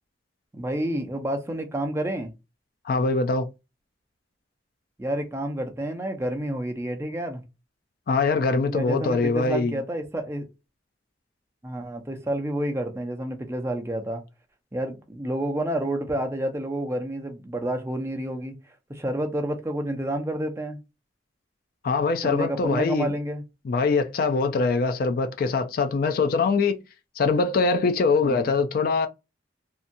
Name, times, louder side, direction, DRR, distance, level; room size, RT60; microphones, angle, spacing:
voice 1, 0.5-2.3 5.0-7.4 8.7-10.5 11.6-14.2 14.7-18.6 18.9-20.8 22.2-23.4 28.2-28.5, right 1 dB, 15° right, 0.5 m, -29 dB
voice 2, 2.8-3.5 8.1-9.8 21.8-23.1 23.6-26.8 27.2-29.1, left 4 dB, 50° left, 0.3 m, -23 dB
2.7 x 2.3 x 2.5 m
head